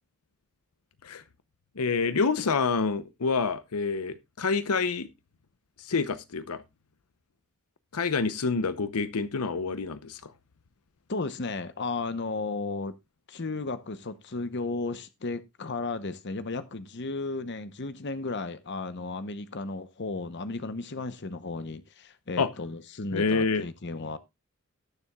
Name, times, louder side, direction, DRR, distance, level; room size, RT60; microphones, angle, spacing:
voice 1, 1.8-5.1 5.8-6.6 7.9-10.3 22.4-22.5 23.1-23.6, left 4 dB, 85° left, 0.7 m, -27 dB
voice 2, 11.1-12.9 13.3-24.2, left 3 dB, 50° left, 0.9 m, -34 dB
18.5 x 7.1 x 2.3 m
head